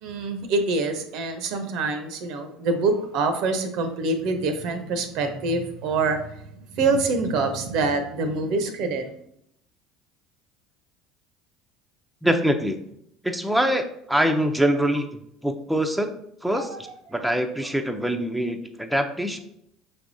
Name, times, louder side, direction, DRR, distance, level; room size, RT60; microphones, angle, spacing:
voice 1, 0.0-6.4 6.7-9.1 16.5-16.8, right 3 dB, 65° right, 7 dB, 0.7 m, -25 dB
voice 2, 12.2-12.8 13.2-15.1 15.4-16.1 16.4-16.7 17.1-19.4, equal, 5° right, 5 dB, 0.5 m, -24 dB
5.7 x 3.4 x 2.6 m, 0.74 s
hypercardioid pair, 80°, 0 cm